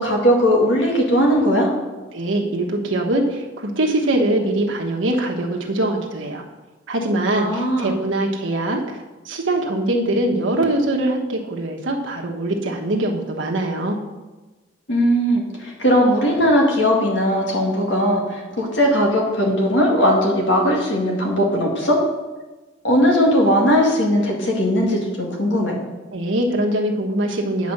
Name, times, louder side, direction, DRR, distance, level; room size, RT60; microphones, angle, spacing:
voice 1, 0.0-1.7 7.4-7.9 14.9-22.0 22.8-25.8, equal, 65° left, -1 dB, 2.1 m, -18 dB
voice 2, 2.1-6.4 6.9-9.0 9.2-14.0 26.1-27.7, right 1 dB, 85° right, 1 dB, 1.2 m, -22 dB
8.5 x 5.1 x 6.6 m, 1.2 s
head